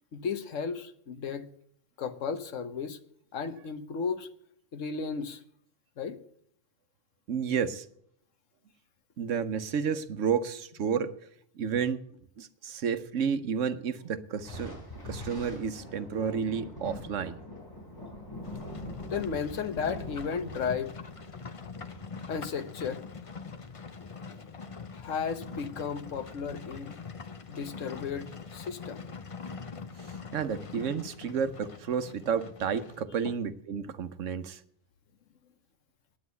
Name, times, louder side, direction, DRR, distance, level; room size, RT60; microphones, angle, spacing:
voice 1, 0.1-1.5 2.0-3.0 3.3-4.3 4.7-5.4 6.0-6.2 18.3-18.4 19.1-20.9 22.3-23.0 24.0-24.5 24.9-26.9 27.5-29.1, left 6 dB, 90° left, 10 dB, 1.4 m, -34 dB
voice 2, 7.3-7.9 9.2-11.1 11.6-12.0 12.4-14.8 15.0-17.4 30.3-34.6, right 7 dB, 80° right, 11 dB, 1.2 m, -31 dB
Thunder, 14.4-23.1, left 1 dB, 15° left, 4.3 m, -44 dB
Livestock farm animals working animals, 18.4-33.0, left 5 dB, 35° left, 0.7 m, -44 dB
9.8 x 9.2 x 8.2 m, 0.69 s
omnidirectional pair, 1.3 m